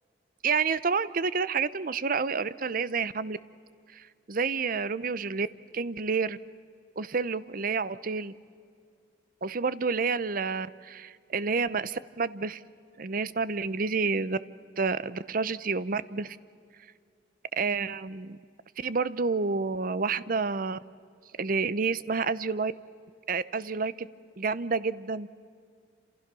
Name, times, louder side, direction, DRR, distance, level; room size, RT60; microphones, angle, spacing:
voice 1, 0.4-3.4 3.9-5.5 5.7-6.4 7.0-8.3 9.4-12.6 13.0-14.4 14.8-16.4 17.6-18.4 18.8-20.8 21.4-22.7 23.3-24.1 24.4-25.3, right 4 dB, 50° right, 16 dB, 0.7 m, -29 dB
29.0 x 27.5 x 6.2 m, 2.3 s
head